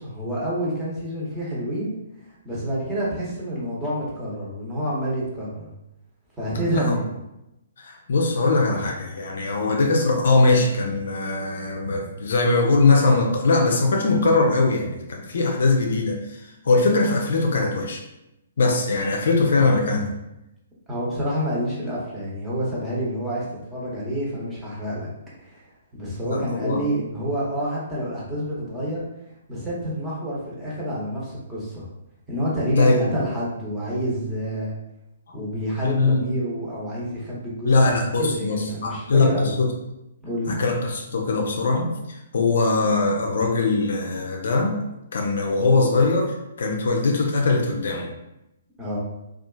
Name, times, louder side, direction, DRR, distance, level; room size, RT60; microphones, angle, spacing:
voice 1, 0.0-1.9 2.4-5.7 6.4-7.1 20.9-25.1 25.4-25.6 25.9-29.0 29.5-31.8 32.3-34.7 35.3-37.9 38.2-39.5 40.2-40.5 48.8-49.0, equal, 10° right, -7 dB, 0.9 m, -28 dB
voice 2, 7.8-16.4 16.6-18.0 18.6-20.1 26.2-26.9 32.7-33.1 35.3-35.4 35.8-36.2 37.6-39.7 40.5-44.8 45.1-48.1, left 3 dB, 65° left, 2 dB, 0.5 m, -21 dB
2.7 x 2.4 x 2.2 m, 0.89 s
hypercardioid pair, 130°, 0 cm